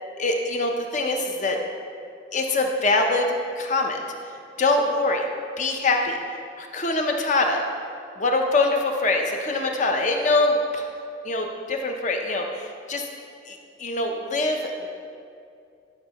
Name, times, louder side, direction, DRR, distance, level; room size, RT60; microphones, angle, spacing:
voice 1, 0.2-1.6 2.3-4.0 4.6-5.3 5.6-6.2 6.6-7.6 8.2-10.9 11.2-13.1 13.5-14.9, left 2 dB, 40° left, 3 dB, 0.6 m, -24 dB
11.5 x 5.5 x 2.9 m, 2.4 s
head